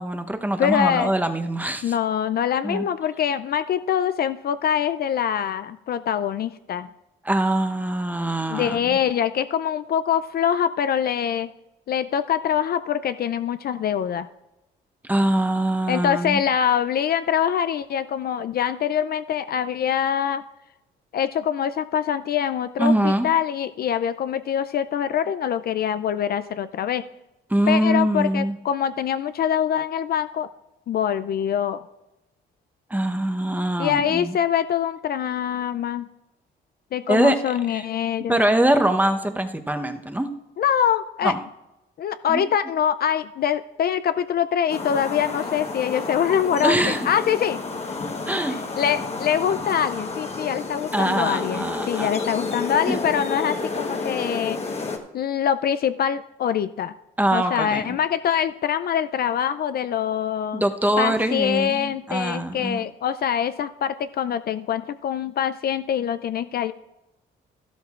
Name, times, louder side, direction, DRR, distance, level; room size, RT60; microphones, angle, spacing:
voice 1, 0.0-1.9 2.6-2.9 7.2-9.0 15.0-16.4 22.8-23.3 27.5-28.6 32.9-34.4 37.1-37.4 37.7-37.8 38.3-40.3 41.2-41.4 42.3-42.4 46.6-47.0 48.3-48.6 50.9-52.1 52.9-53.0 57.2-58.0 60.5-62.8, right 1 dB, 10° right, 6 dB, 0.8 m, -23 dB
voice 2, 0.6-1.1 1.8-6.9 8.5-11.5 11.9-14.3 15.9-20.4 21.1-27.0 27.7-30.5 30.9-31.8 33.8-36.1 36.9-38.4 40.6-41.3 42.0-47.6 48.5-54.6 55.1-56.9 57.3-60.6 61.0-66.7, left 9 dB, 50° left, 12 dB, 0.4 m, -24 dB
sound 1, 44.7-55.0, left 3 dB, 30° left, 1.1 m, -30 dB
12.5 x 12.5 x 2.4 m, 0.96 s
cardioid pair, 90°, 20 cm